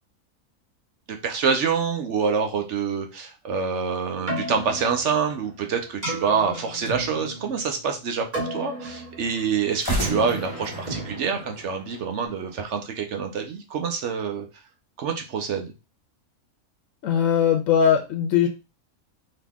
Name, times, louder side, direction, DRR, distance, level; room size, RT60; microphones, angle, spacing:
voice 1, 1.1-14.4 15.0-15.7, right 6 dB, 65° right, 4 dB, 0.9 m, -26 dB
sound 1, 3.8-5.6 9.7-12.8, equal, 15° left, 1.2 m, -34 dB
Keyboard (musical), 4.1-12.3, right 1 dB, 30° right, 1.7 m, -35 dB
voice 2, 17.0-18.5, left 8 dB, 70° left, 4 dB, 1.0 m, -20 dB
3.9 x 2.9 x 3.5 m, 0.29 s
omnidirectional pair, 1.5 m